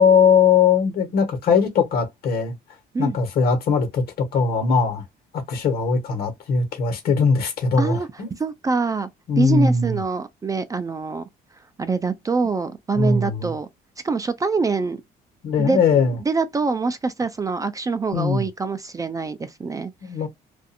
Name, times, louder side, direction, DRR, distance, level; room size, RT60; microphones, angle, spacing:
voice 1, 0.0-2.6 3.0-5.0 5.3-8.4 9.3-10.0 12.9-13.5 15.4-16.2 18.1-18.5 20.0-20.3, left 5 dB, 65° left, 1.2 m, -20 dB
voice 2, 8.4-9.1 9.4-11.3 11.8-13.7 14.0-15.0 15.6-19.9, right 4 dB, 20° right, 0.4 m, -25 dB
2.5 x 2.4 x 2.6 m
cardioid pair, 110°, 17 cm